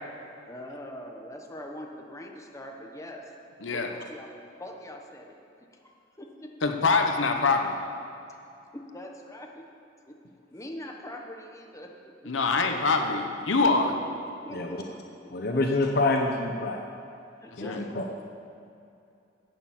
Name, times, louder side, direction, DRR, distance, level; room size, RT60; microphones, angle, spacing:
voice 1, 0.5-3.3 3.7-5.3 5.7-6.7 8.7-9.7 10.1-10.2 10.5-13.3 13.8-13.9 14.4-14.9 15.2-15.6 17.4-18.1, left 1 dB, 15° left, 1 dB, 1.2 m, -43 dB
voice 2, 6.6-7.8 12.3-13.9 17.5-17.8, left 3 dB, 80° left, 5 dB, 1.0 m, -24 dB
voice 3, 15.3-16.8 17.6-18.1, left 2 dB, 55° left, 2 dB, 0.9 m, -27 dB
11.5 x 8.7 x 7.3 m, 2.6 s
head